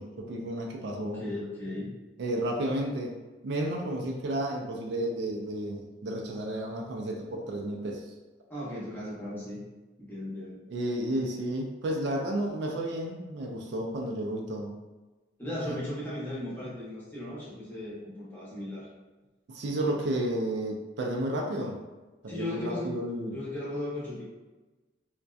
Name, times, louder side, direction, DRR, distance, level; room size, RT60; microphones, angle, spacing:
voice 1, 0.0-1.2 2.2-3.1 3.4-8.1 10.7-14.7 19.5-21.8 22.2-23.4, right 1 dB, 65° right, 0 dB, 0.3 m, -32 dB
voice 2, 0.9-1.9 8.5-9.6 10.0-10.6 15.4-18.9 22.3-22.9 23.3-24.2, left 1 dB, 10° left, -9 dB, 0.7 m, -36 dB
2.6 x 2.1 x 2.3 m, 1.2 s
head